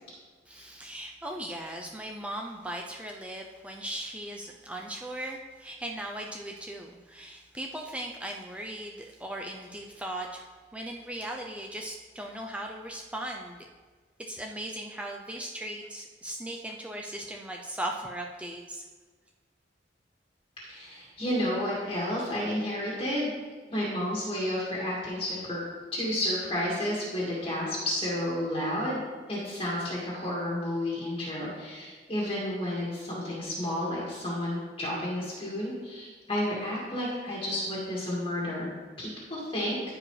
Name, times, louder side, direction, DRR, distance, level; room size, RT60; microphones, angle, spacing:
voice 1, 0.5-13.6 14.2-18.8, right 1 dB, 5° right, 1 dB, 0.5 m, -38 dB
voice 2, 20.6-23.3 23.7-25.6 25.9-29.0 29.3-38.7 39.0-39.8, left 1 dB, 30° left, -6 dB, 2.0 m, -31 dB
14.0 x 4.9 x 3.3 m, 1.5 s
head